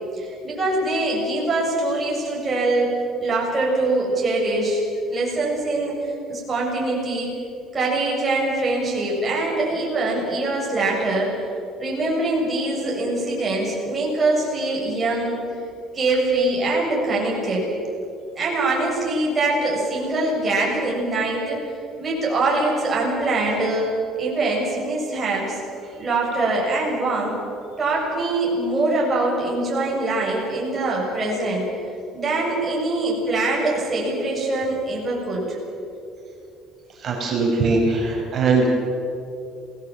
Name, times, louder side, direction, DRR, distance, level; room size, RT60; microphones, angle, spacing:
voice 1, 0.1-2.9 3.2-4.8 5.1-7.3 7.7-11.3 11.8-15.4 15.9-17.7 18.4-21.6 22.0-23.9 24.2-25.6 26.0-27.4 27.8-31.7 32.1-35.6, right 2 dB, 15° right, -4 dB, 7.1 m, -23 dB
voice 2, 37.0-38.7, right 3 dB, 35° right, -1 dB, 5.7 m, -20 dB
28.0 x 18.5 x 7.4 m, 2.6 s
cardioid pair, 165°, 0 cm